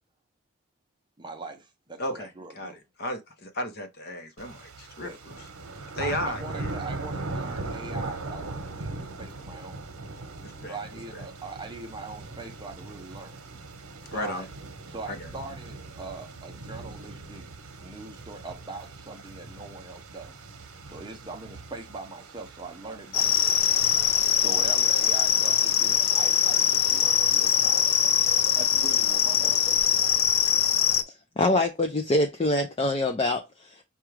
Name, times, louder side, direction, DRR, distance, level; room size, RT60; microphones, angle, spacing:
voice 1, 1.2-2.8 5.0-5.2 6.0-9.8 10.7-13.4 14.0-14.5 14.9-17.4 17.8-20.3 20.9-23.6 24.4-28.2 28.5-30.1, right 3 dB, 20° right, 0.6 m, -41 dB
voice 2, 2.0-5.5 5.9-6.7 10.4-10.7 14.1-14.5 15.1-15.3, left 1 dB, 45° left, 0.8 m, -34 dB
sound 1, 4.4-24.2, right 2 dB, 70° right, 1.0 m, -40 dB
sound 2, 23.1-31.0, left 8 dB, 75° left, 0.6 m, -22 dB
voice 3, 31.4-33.8, left 2 dB, 25° left, 0.4 m, -25 dB
5.9 x 2.4 x 3.2 m
head